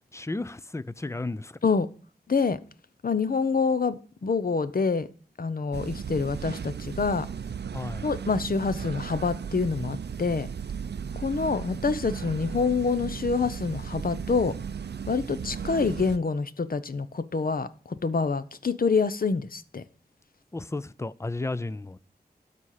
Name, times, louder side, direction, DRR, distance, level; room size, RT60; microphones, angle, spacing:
voice 1, 0.1-1.6 7.7-8.1 20.5-22.0, left 2 dB, 15° left, 0.5 m, -33 dB
voice 2, 2.3-2.6 3.0-5.1 5.4-7.3 8.0-10.5 11.2-14.6 15.1-19.8, left 4 dB, 60° left, 0.8 m, -26 dB
sound 1, 5.7-16.2, right 7 dB, 85° right, 0.5 m, -36 dB
12.5 x 4.2 x 6.5 m
wide cardioid pair, 75°, 17 cm